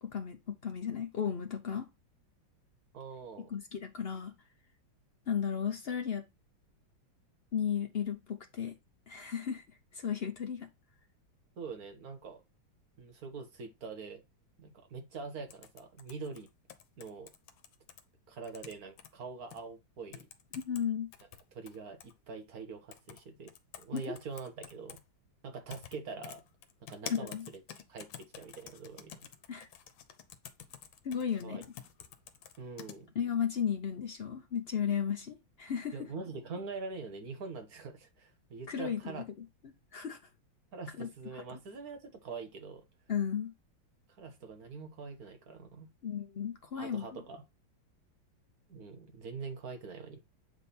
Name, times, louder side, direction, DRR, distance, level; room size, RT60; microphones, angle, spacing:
voice 1, 0.0-1.9 3.5-4.3 5.3-6.2 7.5-8.7 9.1-9.6 9.9-10.7 20.5-21.1 23.9-24.1 27.1-27.5 29.5-29.7 31.0-31.6 33.1-35.9 38.7-39.2 39.9-40.2 41.0-41.1 41.5-41.6 43.1-43.5 46.0-47.1, left 8 dB, 65° left, 0.6 m, -34 dB
voice 2, 2.9-3.5 11.6-12.4 13.0-14.2 14.6-16.5 17.0-17.3 18.3-20.3 21.5-25.0 25.4-26.4 26.9-29.3 31.4-31.6 32.6-33.1 35.9-39.3 40.7-42.8 44.2-45.9 46.7-47.4 48.7-50.2, right 4 dB, 55° right, 1.6 m, -44 dB
sound 1, 15.5-18.0 18.4-19.1 19.5-19.6 20.1-20.8 21.1-22.1 22.9-23.2 23.5-25.0 25.7-25.9 26.2-33.0, left 9 dB, 85° left, 1.6 m, -48 dB
8.1 x 3.6 x 4.2 m
omnidirectional pair, 2.1 m